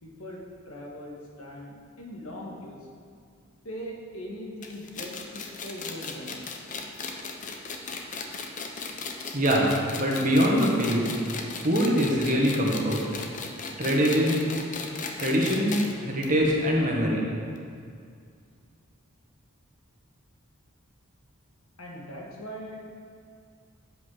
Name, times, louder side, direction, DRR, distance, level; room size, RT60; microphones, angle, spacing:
voice 1, 0.0-2.8 3.6-6.4 21.8-22.8, equal, 75° left, -2 dB, 1.5 m, -40 dB
sound 1, 4.6-15.9 16.2-16.3 16.6-16.7 17.6-17.7, left 4 dB, 35° left, 0.6 m, -36 dB
voice 2, 9.3-9.7 10.0-11.1 11.6-13.0 13.8-14.4 15.2-15.7 16.0-17.2, equal, 40° right, -2 dB, 1.5 m, -23 dB
8.1 x 5.2 x 6.3 m, 2.3 s
head